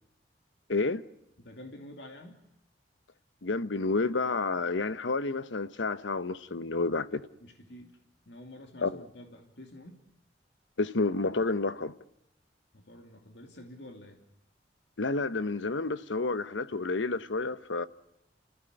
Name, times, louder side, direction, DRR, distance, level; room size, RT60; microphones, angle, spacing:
voice 1, 0.7-1.0 3.4-7.3 8.8-9.0 10.8-11.9 15.0-17.9, left 3 dB, 85° left, 0.9 m, -30 dB
voice 2, 1.4-2.4 7.4-8.0 8.3-10.0 12.7-14.2, left 1 dB, 70° left, 2.8 m, -48 dB
29.5 x 15.0 x 9.6 m
head